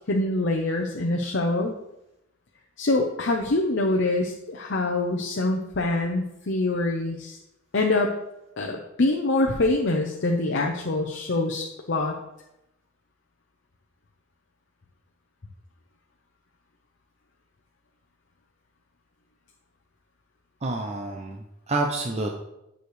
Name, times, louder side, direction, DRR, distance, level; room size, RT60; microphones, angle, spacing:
voice 1, 0.1-1.8 2.8-7.4 7.7-8.2 8.6-12.2, left 2 dB, 60° left, 2 dB, 0.7 m, -25 dB
voice 2, 20.6-22.3, right 2 dB, 30° right, 1 dB, 0.7 m, -28 dB
9.5 x 6.4 x 3.3 m, 0.87 s
head